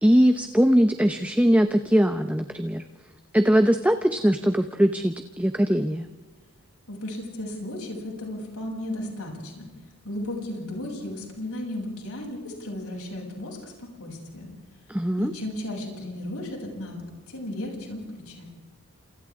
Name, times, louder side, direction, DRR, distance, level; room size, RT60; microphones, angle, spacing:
voice 1, 0.0-2.8 3.3-6.1 14.9-15.3, equal, 5° right, 7 dB, 0.7 m, -21 dB
voice 2, 6.9-9.7 10.0-14.5 15.2-18.4, left 1 dB, 85° left, -1 dB, 7.7 m, -35 dB
29.5 x 28.0 x 3.7 m, 1.3 s
head